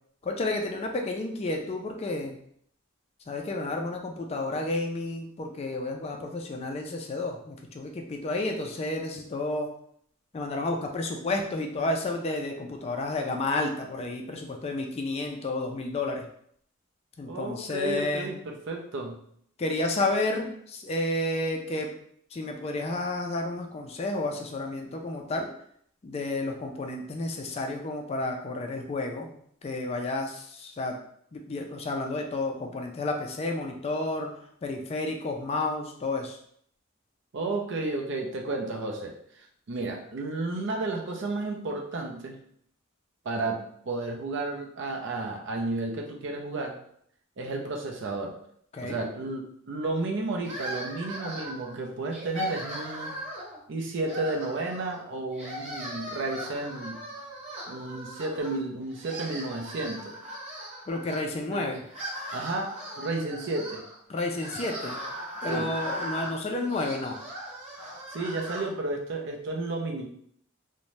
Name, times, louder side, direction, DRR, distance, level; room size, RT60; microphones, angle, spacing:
voice 1, 0.2-2.4 3.3-9.7 10.3-16.3 17.2-18.3 19.6-21.9 22.3-25.5 26.0-29.3 29.6-30.9 31.3-34.3 34.6-36.4 48.7-49.0 60.9-61.8 64.1-65.0 65.4-67.2, left 2 dB, 30° left, 2 dB, 0.3 m, -31 dB
voice 2, 17.3-19.2 37.3-42.4 43.2-46.8 47.4-48.4 48.8-53.2 53.7-57.0 57.7-60.1 61.5-61.7 62.3-63.8 65.5-65.7 68.1-70.1, right 2 dB, 60° right, 2 dB, 0.5 m, -32 dB
sound 1, 50.4-51.7 52.1-53.6 54.0-55.0 55.3-58.6 58.9-61.2 61.7-68.7, equal, 30° right, 0.9 m, -38 dB
2.6 x 2.1 x 3.0 m, 0.66 s
head